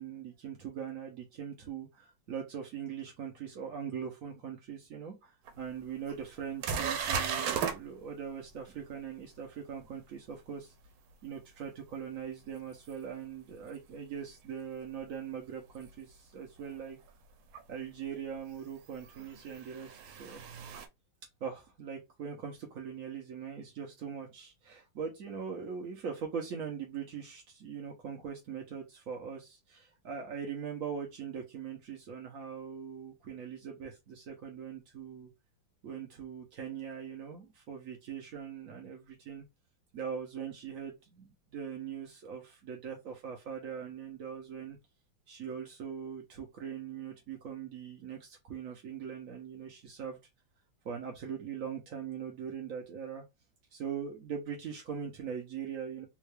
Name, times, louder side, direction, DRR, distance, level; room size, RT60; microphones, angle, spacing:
voice 1, 0.0-10.7 11.2-17.0 17.7-20.4 21.4-35.3 35.8-39.4 39.9-44.8 45.3-50.2 50.8-53.2 53.7-56.1, right 7 dB, 65° right, 1 dB, 0.8 m, -41 dB
sound 1, 5.5-5.6 6.1-6.2 6.6-7.8 12.9-13.0 15.7-15.8 17.5-17.6 19.0-20.9, right 7 dB, 85° right, 1.4 m, -35 dB
3.6 x 2.3 x 3.2 m, 0.22 s
omnidirectional pair, 2.2 m